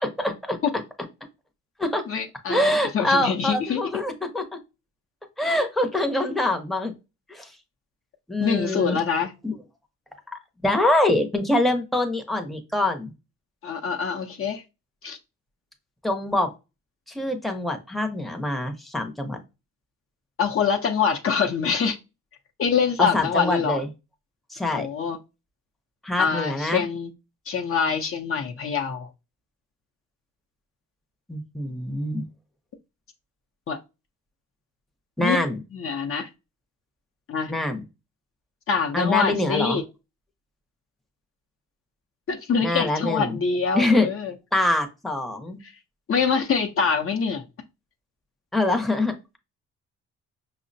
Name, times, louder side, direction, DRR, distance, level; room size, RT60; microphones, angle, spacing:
voice 1, 0.0-0.6 1.8-2.0 2.5-4.6 5.4-6.9 7.3-7.5 8.3-9.0 9.4-9.5 10.3-13.1 16.0-16.5 17.1-19.4 23.0-23.9 24.5-24.9 26.0-26.8 31.3-32.2 35.2-35.6 37.5-37.8 38.9-39.8 42.6-43.3 43.7-44.1 44.5-45.6 48.5-49.1, left 1 dB, ahead, 0.6 m, -24 dB
voice 2, 2.1-3.9 8.4-9.3 13.6-14.6 15.0-15.2 20.4-22.0 22.6-23.8 24.7-25.2 26.2-27.1 27.5-29.1 33.7-33.8 35.2-35.4 35.7-36.3 37.3-37.5 38.7-39.8 42.3-44.3 46.1-47.4, left 6 dB, 45° left, 0.6 m, -25 dB
5.4 x 2.1 x 2.6 m
cardioid pair, 90°, 30 cm